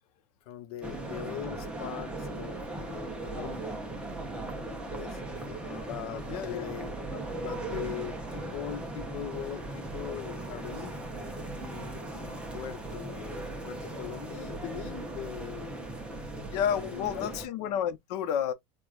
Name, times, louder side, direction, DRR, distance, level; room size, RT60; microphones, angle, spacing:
voice 1, 0.4-4.2 4.9-5.2 5.7-11.0 11.5-16.2 16.6-17.4, left 11 dB, 65° left, 0.9 m, -41 dB
sound 1, 0.8-17.5, right 2 dB, 5° right, 0.6 m, -38 dB
voice 2, 5.5-5.9 6.3-6.7 16.5-18.5, left 9 dB, 90° left, 0.9 m, -31 dB
4.6 x 2.4 x 2.4 m
cardioid pair, 175°, 20 cm